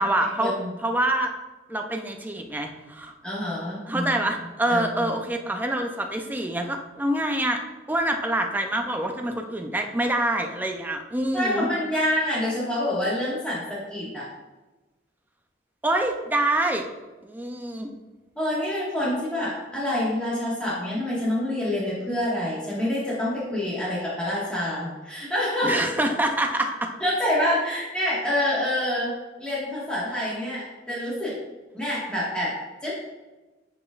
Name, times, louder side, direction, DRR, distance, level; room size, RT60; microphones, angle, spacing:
voice 1, 0.0-0.5 0.8-1.3 1.7-3.1 3.9-7.6 7.9-11.7 15.8-16.9 17.2-17.9 25.6-26.9, right 1 dB, 10° right, 3 dB, 0.5 m, -26 dB
voice 2, 3.2-4.1 4.7-4.9 11.3-14.3 18.3-25.7 27.0-29.1 29.4-31.3 31.7-32.5 32.8-32.9, left 1 dB, 5° left, -9 dB, 1.6 m, -27 dB
9.8 x 5.0 x 2.4 m, 1.2 s
head